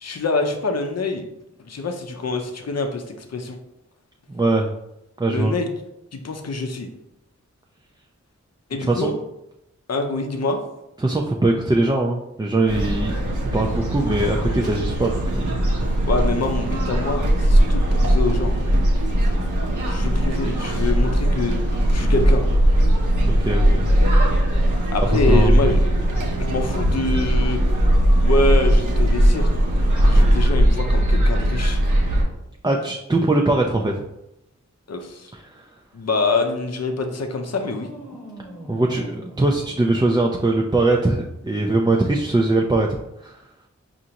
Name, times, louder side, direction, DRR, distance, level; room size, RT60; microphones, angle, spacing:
voice 1, 0.0-1.2 1.6-3.6 5.3-5.7 6.1-6.9 8.7-9.1 9.9-10.6 16.0-18.5 19.8-21.5 21.9-22.5 24.9-25.8 26.4-27.6 28.2-29.5 30.0-31.8 34.9-35.3 35.9-37.9, left 3 dB, 60° left, 5 dB, 0.6 m, -25 dB
voice 2, 4.3-4.7 5.2-5.5 8.8-9.1 11.0-13.1 13.5-15.6 23.2-23.9 24.5-24.8 25.1-25.6 32.6-34.0 35.3-35.6 38.7-43.3, right 2 dB, 15° right, -1 dB, 0.4 m, -21 dB
sound 1, 12.7-32.2, right 1 dB, 90° right, 0.8 m, -19 dB
sound 2, 37.4-40.6, right 1 dB, 5° left, 1.0 m, -40 dB
5.0 x 2.5 x 2.8 m, 0.85 s
wide cardioid pair, 40°, 30 cm